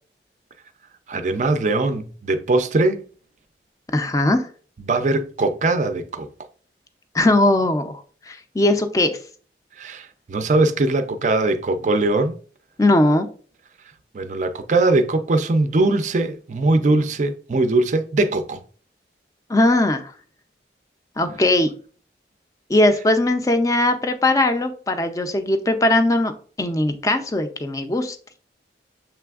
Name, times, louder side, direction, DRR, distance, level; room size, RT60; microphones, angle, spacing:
voice 1, 1.1-3.0 4.8-6.3 9.8-12.3 14.1-18.6, right 2 dB, 45° right, 0.4 m, -21 dB
voice 2, 3.9-4.5 7.1-8.0 8.3-9.2 12.8-13.3 19.5-20.1 21.2-21.7 22.7-26.3 26.6-28.2, left 1 dB, 20° left, 0.4 m, -19 dB
6.8 x 3.3 x 2.3 m
head